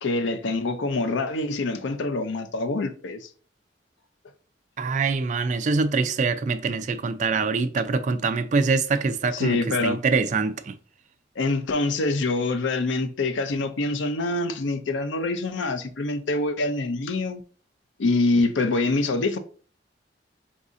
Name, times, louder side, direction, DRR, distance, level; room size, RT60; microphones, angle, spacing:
voice 1, 0.0-3.3 9.3-10.0 11.4-17.4 18.0-19.4, left 2 dB, 85° left, 0.5 m, -25 dB
voice 2, 4.8-10.7, right 4 dB, 40° right, 0.3 m, -24 dB
4.1 x 2.7 x 3.6 m
head